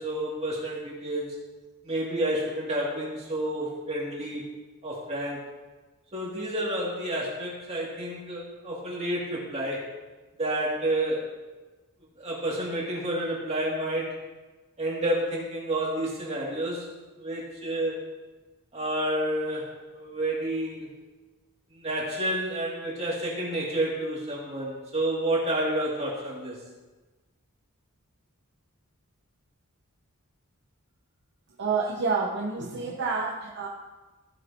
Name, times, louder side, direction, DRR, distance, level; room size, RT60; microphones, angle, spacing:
voice 1, 0.0-1.4 1.8-4.5 4.8-5.4 6.1-9.8 10.4-11.4 12.2-14.2 14.8-16.9 17.2-18.0 18.7-20.9 21.7-26.6, right 1 dB, 30° right, -5 dB, 2.8 m, -30 dB
voice 2, 31.6-33.7, right 4 dB, 55° right, -2 dB, 0.9 m, -28 dB
15.0 x 8.3 x 3.0 m, 1.2 s
head